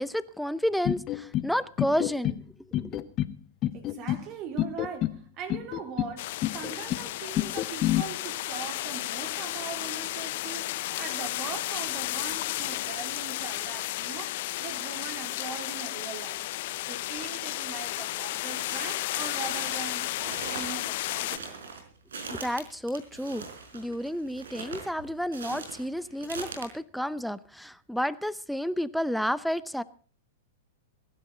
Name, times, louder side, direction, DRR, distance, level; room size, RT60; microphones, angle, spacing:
voice 1, 0.0-2.4 2.7-3.0 22.3-23.4 23.7-29.8, equal, ahead, 0.7 m, -31 dB
sound 1, 0.8-1.5 1.8-2.4 2.7-3.3 3.6-4.2 4.6-5.2 5.5-6.1 6.4-7.0 7.4-8.0, left 14 dB, 35° left, 1.0 m, -28 dB
voice 2, 3.7-16.5 16.9-21.7, right 6 dB, 40° right, 3.8 m, -41 dB
sound 2, 6.2-21.4, left 17 dB, 60° left, 0.6 m, -33 dB
sound 3, 18.6-18.8 19.3-26.7, right 4 dB, 85° right, 4.8 m, -41 dB
22.0 x 11.5 x 3.9 m
hypercardioid pair, 120°, 0 cm